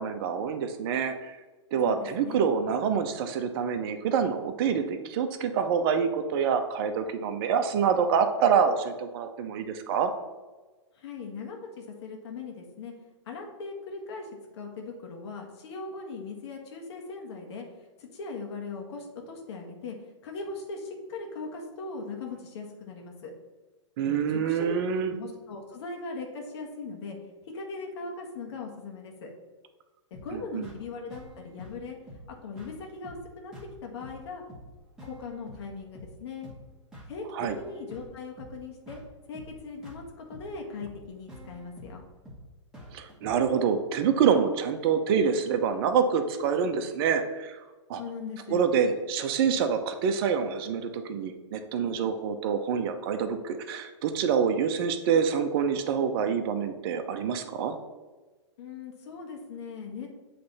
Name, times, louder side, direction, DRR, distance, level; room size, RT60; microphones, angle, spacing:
voice 1, 0.0-1.4 1.7-10.1 24.0-25.1 30.3-30.7 37.3-37.5 42.9-47.6 47.9-48.0 48.5-57.8, right 7 dB, 50° right, 7 dB, 0.8 m, -26 dB
voice 2, 1.8-2.5 10.9-12.9 13.3-17.6 18.0-20.0 20.2-23.3 24.0-24.7 25.1-27.2 27.4-29.3 30.1-32.0 32.4-33.5 33.8-34.4 35.0-36.5 37.1-37.2 37.6-39.0 39.3-42.0 48.0-48.6 58.6-60.1, left 4 dB, 60° left, 1 dB, 1.4 m, -39 dB
sound 1, 30.1-43.5, equal, 5° right, 1.6 m, -48 dB
7.8 x 3.3 x 4.1 m, 1.2 s
hypercardioid pair, 120°, 16 cm